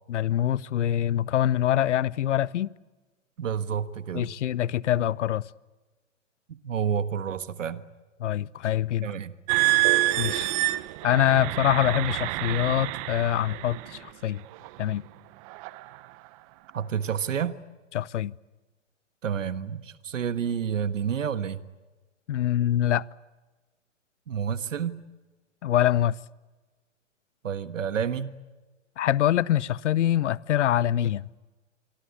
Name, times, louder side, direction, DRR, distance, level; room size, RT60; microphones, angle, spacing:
voice 1, 0.1-2.7 4.1-5.4 8.2-9.1 10.2-10.5 11.0-14.4 14.8-15.0 17.9-18.3 22.3-23.0 25.6-26.1 29.0-31.3, left 11 dB, 65° left, 0.9 m, -24 dB
voice 2, 3.4-4.3 6.5-7.8 9.0-9.3 16.7-17.6 19.2-21.6 24.3-25.0 27.4-28.3, right 7 dB, 80° right, 1.6 m, -29 dB
sound 1, 9.5-14.0 14.6-14.9 15.5-15.8, right 21 dB, 30° right, 0.8 m, -27 dB
27.5 x 23.5 x 8.5 m
hypercardioid pair, 135°, 38 cm